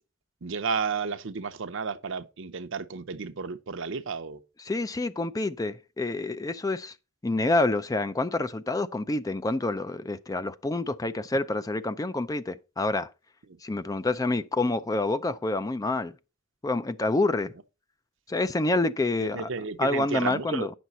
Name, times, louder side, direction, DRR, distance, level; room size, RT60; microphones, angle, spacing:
voice 1, 0.4-4.4 19.2-20.7, right 5 dB, 65° right, 0.7 m, -32 dB
voice 2, 4.6-6.9 7.2-13.1 13.6-16.1 16.6-17.5 18.3-19.5 19.8-20.7, left 2 dB, 15° left, 0.4 m, -27 dB
9.1 x 6.2 x 4.1 m
head